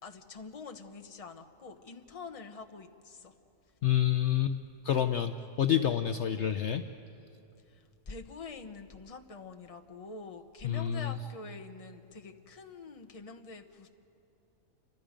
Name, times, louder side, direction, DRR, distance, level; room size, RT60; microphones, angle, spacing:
voice 1, 0.0-3.4 7.7-13.9, left 4 dB, 30° left, 6 dB, 1.0 m, -46 dB
voice 2, 3.8-4.6 4.8-6.8 10.6-11.1, left 10 dB, 60° left, 8 dB, 0.9 m, -28 dB
29.0 x 24.0 x 5.1 m, 2.7 s
omnidirectional pair, 1.5 m